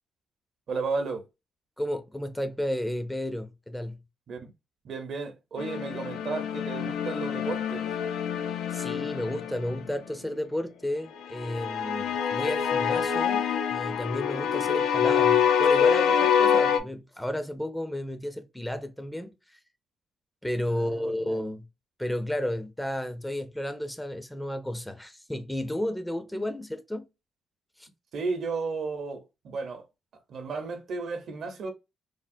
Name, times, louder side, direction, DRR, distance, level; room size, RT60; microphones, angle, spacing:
voice 1, 0.7-1.3 4.3-4.5 4.8-7.9 20.7-21.4 28.1-29.8 30.3-31.7, right 4 dB, 60° right, 0.7 m, -33 dB
voice 2, 1.8-4.0 8.7-19.6 20.4-21.7 22.0-27.1 27.8-27.9, left 1 dB, 5° left, 0.5 m, -32 dB
sound 1, 5.6-9.9 11.4-16.8, left 8 dB, 85° left, 0.4 m, -25 dB
3.4 x 2.0 x 2.5 m
cardioid pair, 90°, 0 cm